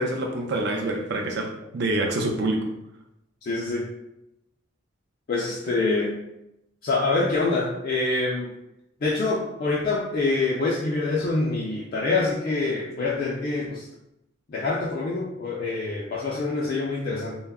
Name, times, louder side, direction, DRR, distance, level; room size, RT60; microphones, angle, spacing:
voice 1, 0.0-2.7, right 1 dB, 55° right, 2 dB, 0.4 m, -26 dB
voice 2, 3.4-3.9 5.3-6.2 6.8-8.5 9.0-13.9 14.5-17.4, left 3 dB, 45° left, -4 dB, 0.3 m, -25 dB
2.2 x 2.0 x 3.4 m, 0.85 s
head